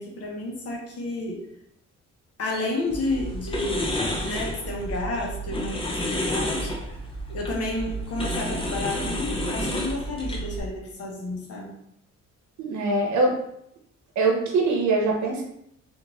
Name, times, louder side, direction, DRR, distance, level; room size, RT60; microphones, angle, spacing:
voice 1, 0.0-1.4 2.4-6.7 7.3-11.8, left 2 dB, 50° left, -1 dB, 0.9 m, -31 dB
sound 1, 2.9-10.6, equal, 20° left, 0.6 m, -30 dB
voice 2, 12.6-13.4 14.2-15.4, right 3 dB, 70° right, 0 dB, 0.8 m, -23 dB
2.5 x 2.5 x 3.1 m, 0.76 s
cardioid pair, 90°, 30 cm